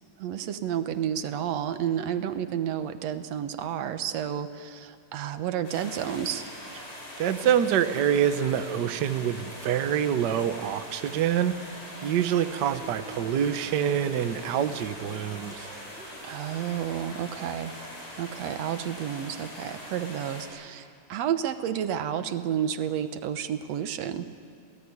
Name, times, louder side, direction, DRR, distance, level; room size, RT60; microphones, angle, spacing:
voice 1, 0.2-6.5 16.2-17.7 18.2-24.3, right 9 dB, 70° right, 10 dB, 2.1 m, -31 dB
sound 1, 5.6-20.5, equal, 75° left, 7.9 m, -42 dB
voice 2, 7.2-11.5 12.0-15.7, right 9 dB, 85° right, 10 dB, 0.9 m, -26 dB
sound 2, 12.7-16.8, right 1 dB, 5° right, 4.9 m, -47 dB
27.5 x 18.0 x 9.7 m, 2.3 s
omnidirectional pair, 3.3 m